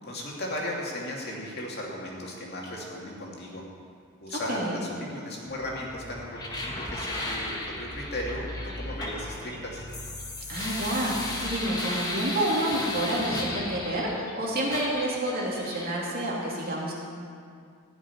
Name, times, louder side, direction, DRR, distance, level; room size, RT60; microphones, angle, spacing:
voice 1, 0.0-3.6 4.2-9.9, left 1 dB, 50° left, -3 dB, 2.6 m, -36 dB
voice 2, 4.3-4.8 10.5-16.9, right 1 dB, 45° right, -4 dB, 3.0 m, -29 dB
sound 1, 5.4-11.5, left 1 dB, 20° right, 3.6 m, -42 dB
sound 2, 6.3-14.3 14.7-15.9, left 1 dB, 20° left, 1.5 m, -35 dB
16.0 x 6.2 x 9.9 m, 2.3 s
head